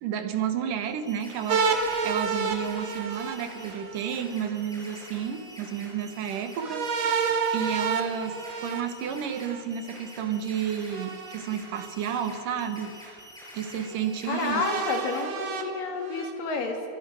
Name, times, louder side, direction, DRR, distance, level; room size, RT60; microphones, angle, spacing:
voice 1, 0.0-6.9 7.5-13.2 13.5-14.6, right 8 dB, 80° right, 8 dB, 3.0 m, -31 dB
sound 1, 0.8-15.2, equal, ahead, 7.0 m, -47 dB
sound 2, 1.5-4.2 6.6-9.6 10.9-11.9 12.6-12.7 14.3-16.3, right 5 dB, 55° right, 2.8 m, -30 dB
voice 2, 14.2-16.9, left 4 dB, 85° left, 3 dB, 4.4 m, -30 dB
29.5 x 24.0 x 6.4 m, 2.5 s
omnidirectional pair, 3.8 m